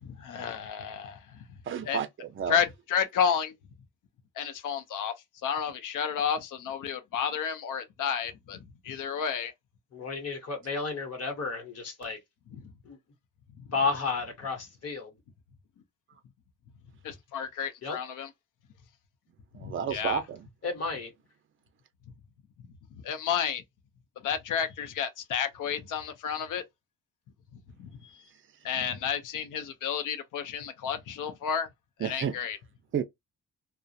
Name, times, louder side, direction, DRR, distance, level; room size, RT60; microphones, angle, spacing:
voice 1, 0.0-1.2 1.9-2.0 2.5-3.5 4.4-5.1 5.4-8.6 8.8-9.5 17.0-18.3 19.6-20.2 23.0-23.6 24.2-26.6 27.8-28.2 28.6-31.7 32.0-32.6, left 8 dB, 65° left, 0.6 m, -31 dB
voice 2, 1.6-2.6 19.5-20.5 32.0-32.3 32.9-33.0, right 8 dB, 40° right, 0.5 m, -31 dB
voice 3, 9.9-12.2 12.9-13.0 13.7-15.2 17.8-18.0 20.6-21.1, left 4 dB, 50° left, 0.9 m, -32 dB
2.3 x 2.0 x 2.6 m
cardioid pair, 135°, 33 cm